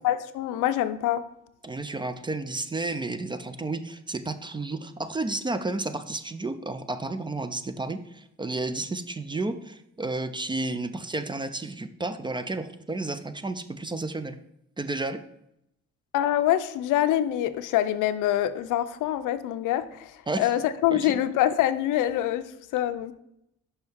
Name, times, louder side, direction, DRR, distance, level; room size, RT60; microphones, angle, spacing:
voice 1, 0.0-1.2 16.1-20.1 20.4-22.5 22.7-23.1, left 12 dB, 90° left, 12 dB, 0.5 m, -25 dB
voice 2, 1.6-14.4 14.8-15.2 20.3-20.5 20.9-21.2, right 2 dB, 15° right, 11 dB, 0.4 m, -32 dB
6.1 x 5.6 x 3.5 m, 0.79 s
cardioid pair, 90°, 30 cm